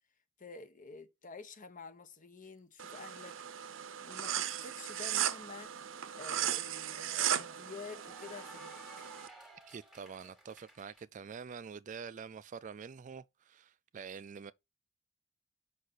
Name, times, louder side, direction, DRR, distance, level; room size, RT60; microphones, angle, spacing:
voice 1, 0.4-3.4 4.0-5.8 6.1-9.1, left 4 dB, 40° left, 1.0 m, -49 dB
sound 1, 2.8-9.3, right 10 dB, 70° right, 0.7 m, -37 dB
Cheering / Applause, 5.6-11.0, right 1 dB, 5° right, 1.5 m, -57 dB
voice 2, 9.7-14.5, right 6 dB, 40° right, 0.3 m, -46 dB
6.4 x 5.6 x 4.0 m
head